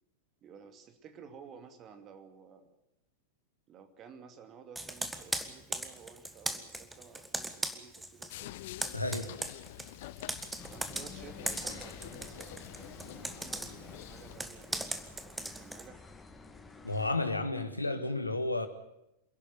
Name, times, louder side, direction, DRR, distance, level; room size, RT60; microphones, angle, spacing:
voice 1, 0.4-2.7 3.7-8.6 10.7-16.1, right 6 dB, 30° right, 2.7 m, -53 dB
Computer keyboard, 4.8-8.3 8.6-15.9, right 2 dB, 5° right, 1.6 m, -38 dB
sound 1, 8.3-14.4, left 16 dB, 50° left, 0.7 m, -47 dB
voice 2, 8.9-9.4 16.8-18.7, left 2 dB, 85° left, 1.8 m, -32 dB
sound 2, 10.6-17.1, left 3 dB, 10° left, 2.1 m, -51 dB
27.5 x 11.5 x 9.6 m
figure-of-eight pair, 90°, 0 cm